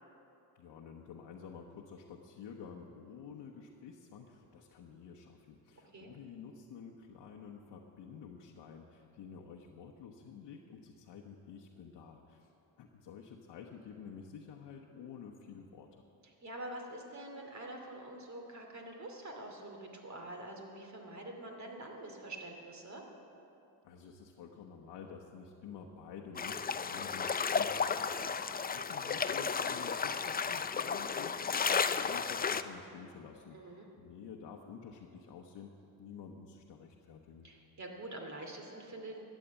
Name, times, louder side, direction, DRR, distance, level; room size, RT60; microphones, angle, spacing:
voice 1, 0.5-12.5 12.8-16.0 23.8-35.7 36.0-37.5, left 6 dB, 80° left, -1 dB, 1.1 m, -50 dB
voice 2, 16.4-23.0 29.2-29.3 33.5-33.9 37.4-39.2, right 1 dB, 40° right, 2 dB, 2.6 m, -46 dB
sound 1, 26.4-32.6, left 6 dB, 20° left, 0.4 m, -33 dB
12.5 x 8.4 x 8.2 m, 2.8 s
cardioid pair, 80°, 42 cm